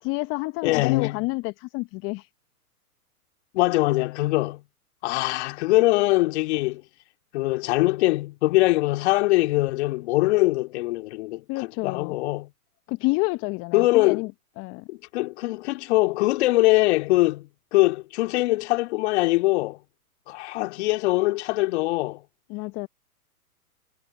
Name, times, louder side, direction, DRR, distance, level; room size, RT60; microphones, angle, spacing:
voice 1, 0.0-2.3 11.5-12.2 12.9-14.9 22.5-22.9, left 24 dB, 30° left, 0.9 m, -29 dB
voice 2, 0.6-1.2 3.5-4.6 5.0-6.8 7.3-12.5 13.7-14.2 14.9-19.8 20.3-22.2, left 20 dB, 45° left, 2.7 m, -22 dB
hypercardioid pair, 120°, 46 cm